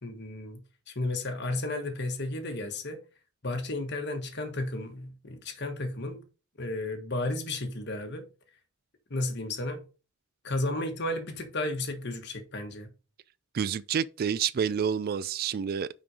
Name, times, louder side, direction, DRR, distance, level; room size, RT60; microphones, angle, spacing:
voice 1, 0.0-3.0 3.4-6.3 6.6-8.3 9.1-9.8 10.4-12.9, left 2 dB, 55° left, 1.4 m, -33 dB
voice 2, 13.5-15.9, right 7 dB, 45° right, 0.3 m, -28 dB
6.0 x 5.2 x 4.8 m
head